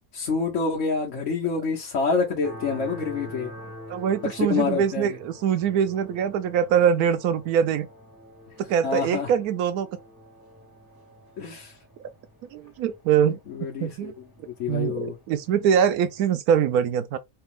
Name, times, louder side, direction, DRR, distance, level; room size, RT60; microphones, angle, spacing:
voice 1, 0.1-3.5 4.3-5.2 8.8-9.3 11.4-11.7 13.5-14.3 14.6-15.2, left 4 dB, 60° left, 1.1 m, -27 dB
sound 1, 2.4-16.3, equal, 10° right, 1.9 m, -46 dB
voice 2, 3.9-7.9 8.7-9.9 12.5-13.4 13.8-14.1 14.7-17.2, right 8 dB, 80° right, 1.1 m, -23 dB
3.4 x 2.9 x 3.5 m
omnidirectional pair, 1.6 m